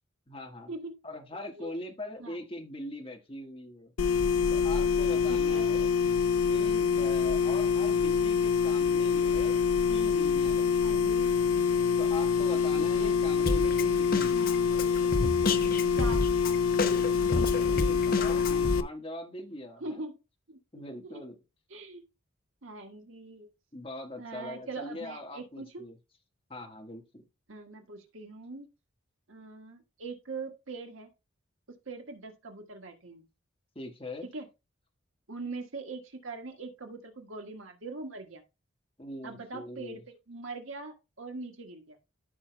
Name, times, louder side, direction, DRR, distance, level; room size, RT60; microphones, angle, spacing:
voice 1, 0.3-0.7 1.0-3.9 4.5-5.9 6.5-9.6 9.9-11.2 12.0-14.9 17.3-20.1 20.7-21.3 23.7-26.0 26.5-27.2 33.7-34.3 39.0-40.0, left 1 dB, 25° left, 1.5 m, -42 dB
sound 1, 4.0-18.8, left 6 dB, 90° left, 0.6 m, -26 dB
voice 2, 5.3-5.7 10.8-11.3 12.7-13.2 15.9-16.3 19.8-20.2 20.5-21.1 21.7-22.0 22.6-23.5 24.2-25.8 27.5-28.7 29.3-31.1 31.9-33.2 34.3-34.5 35.3-38.4 39.2-42.0, right 3 dB, 70° right, 1.7 m, -42 dB
Drum kit, 13.5-18.8, left 3 dB, 45° left, 0.7 m, -30 dB
14.0 x 5.7 x 2.2 m
head